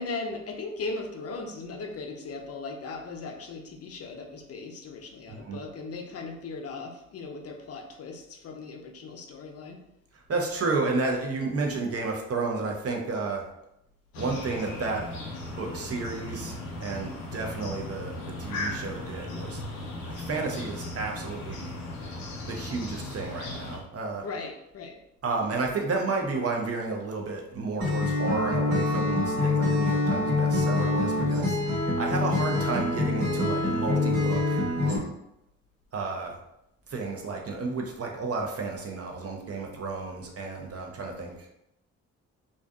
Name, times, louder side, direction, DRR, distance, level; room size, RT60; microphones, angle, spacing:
voice 1, 0.0-9.8 24.2-25.0, left 3 dB, 40° left, 3 dB, 0.6 m, -38 dB
voice 2, 5.3-5.6 10.3-13.4 14.2-15.0 15.6-19.6 20.0-21.7 22.5-24.2 25.2-34.6 35.9-36.4 36.9-41.3, right 3 dB, 40° right, 1 dB, 0.7 m, -32 dB
sound 1, 14.1-23.8, left 1 dB, 80° left, 0.6 m, -37 dB
Acoustic guitar, 27.8-35.0, left 2 dB, 70° right, 1.3 m, -25 dB
2.5 x 2.3 x 2.3 m, 0.82 s
hypercardioid pair, 40°, 39 cm